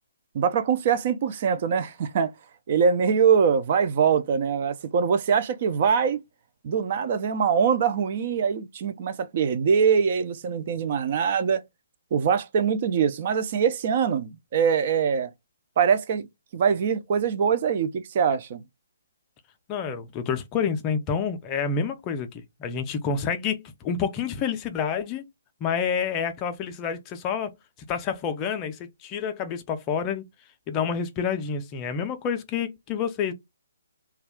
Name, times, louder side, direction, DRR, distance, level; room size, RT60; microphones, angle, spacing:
voice 1, 0.3-2.3 2.7-6.2 6.6-11.6 12.1-15.3 15.8-16.3 16.5-18.6, right 6 dB, 40° right, 0.4 m, -23 dB
voice 2, 19.7-25.2 25.6-27.5 27.9-30.2 30.7-33.3, left 6 dB, 20° left, 0.4 m, -28 dB
2.4 x 2.2 x 3.4 m
figure-of-eight pair, 135°, 0 cm